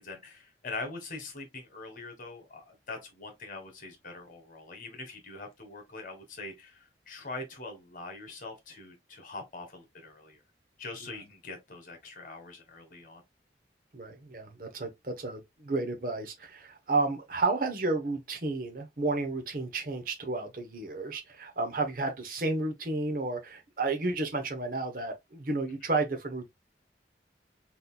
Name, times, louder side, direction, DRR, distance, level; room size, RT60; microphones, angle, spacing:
voice 1, 0.0-10.4 10.8-13.2, left 3 dB, 50° left, 1.5 m, -43 dB
voice 2, 13.9-26.5, right 3 dB, 50° right, 0.9 m, -32 dB
4.2 x 4.0 x 2.2 m
head